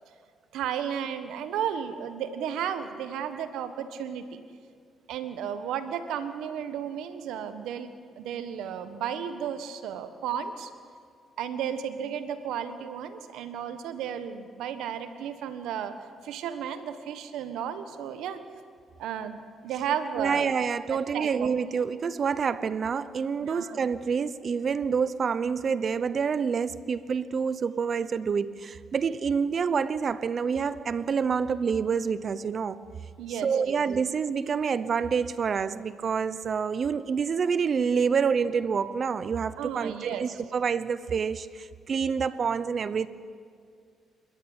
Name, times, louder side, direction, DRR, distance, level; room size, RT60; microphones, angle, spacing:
voice 1, 0.5-4.4 5.1-7.9 8.2-10.7 11.4-15.9 16.2-18.4 19.0-21.5 23.4-23.8 33.2-33.8 39.6-40.3, right 8 dB, 85° right, 10 dB, 1.4 m, -33 dB
voice 2, 20.2-32.8 33.4-43.1, right 6 dB, 50° right, 15 dB, 0.8 m, -27 dB
27.5 x 13.0 x 9.0 m, 2.1 s
cardioid pair, 90°, 0 cm